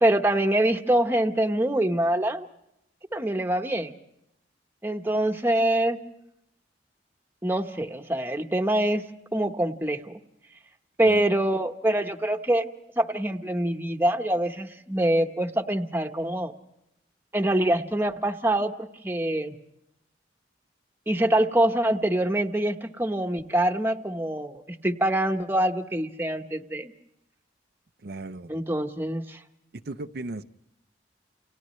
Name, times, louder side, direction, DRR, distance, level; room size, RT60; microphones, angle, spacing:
voice 1, 0.0-2.5 3.1-3.9 4.8-6.0 7.4-9.1 9.3-10.1 11.0-12.7 13.0-16.5 17.3-19.5 21.1-26.9 28.5-29.4, right 1 dB, 15° right, 1.1 m, -25 dB
voice 2, 28.0-28.5 29.9-30.4, right 2 dB, 60° right, 0.7 m, -36 dB
29.5 x 29.0 x 3.2 m
head